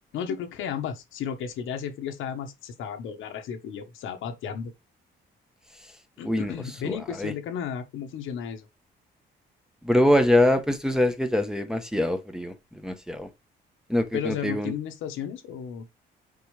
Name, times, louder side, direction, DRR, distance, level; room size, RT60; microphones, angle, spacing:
voice 1, 0.1-4.7 6.2-8.7 14.1-15.9, left 8 dB, 90° left, 1.4 m, -33 dB
voice 2, 6.8-7.3 9.8-12.5 12.8-13.3 13.9-14.7, left 1 dB, 5° right, 1.1 m, -23 dB
6.0 x 4.6 x 3.4 m
cardioid pair, 90°, 20 cm